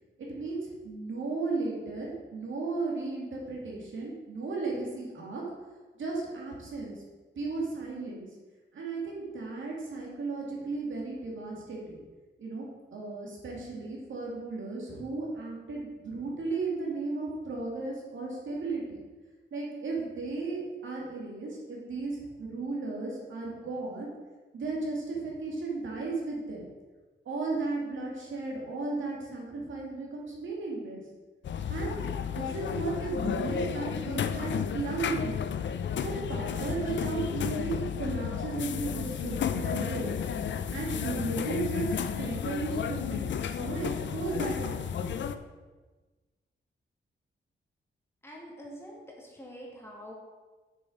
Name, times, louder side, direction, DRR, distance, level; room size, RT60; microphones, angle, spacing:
voice 1, 0.2-5.4 6.0-7.0 7.4-8.3 8.7-12.0 12.4-19.0 19.5-24.1 24.5-26.6 27.3-31.0 31.7-32.0 32.3-35.4 36.0-40.1 40.7-45.2, right 3 dB, 75° right, -3 dB, 2.2 m, -35 dB
sound 1, 31.4-45.4, left 8 dB, 65° left, 0.5 m, -32 dB
voice 2, 48.2-50.1, equal, 10° left, -2 dB, 1.7 m, -45 dB
6.7 x 6.2 x 5.0 m, 1.3 s
wide cardioid pair, 125°, 20 cm